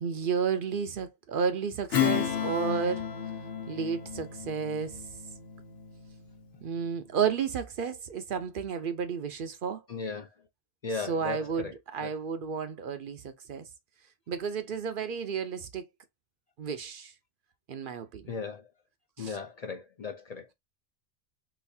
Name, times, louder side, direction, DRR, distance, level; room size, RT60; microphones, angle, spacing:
voice 1, 0.0-3.1 3.7-5.0 6.6-9.8 10.9-13.7 14.3-15.9 16.6-17.1 17.7-18.4 19.2-19.4, right 6 dB, 60° right, 0.7 m, -32 dB
Strum, 1.9-6.8, left 9 dB, 75° left, 1.0 m, -33 dB
voice 2, 9.9-10.3 10.8-11.7 12.0-12.1 18.3-18.6 19.2-20.5, left 4 dB, 45° left, 0.6 m, -36 dB
4.0 x 2.4 x 2.7 m
omnidirectional pair, 1.1 m